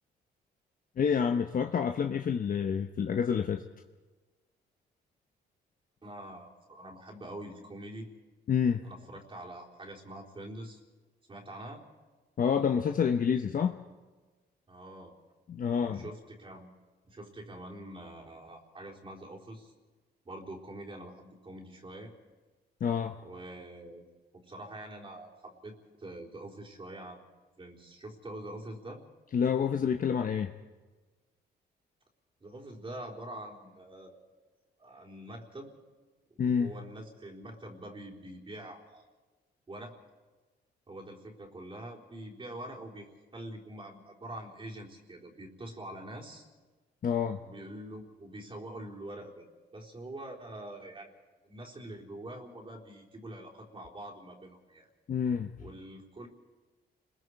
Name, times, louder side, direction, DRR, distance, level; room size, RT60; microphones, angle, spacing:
voice 1, 1.0-3.6 8.5-8.8 12.4-13.8 15.5-16.0 22.8-23.2 29.3-30.5 36.4-36.7 47.0-47.4 55.1-55.5, left 7 dB, 50° left, 6 dB, 1.0 m, -28 dB
voice 2, 6.0-8.1 8.8-10.8 11.3-11.8 14.7-15.1 15.8-16.7 17.0-19.7 20.2-22.1 23.2-24.0 24.3-27.2 27.6-29.0 32.4-34.2 34.8-35.7 36.3-39.1 39.7-40.0 40.9-46.4 47.4-51.1 51.4-54.9 55.6-56.3, right 1 dB, 30° right, -3 dB, 4.0 m, -45 dB
30.0 x 21.5 x 4.8 m, 1.3 s
cardioid pair, 90°, 18 cm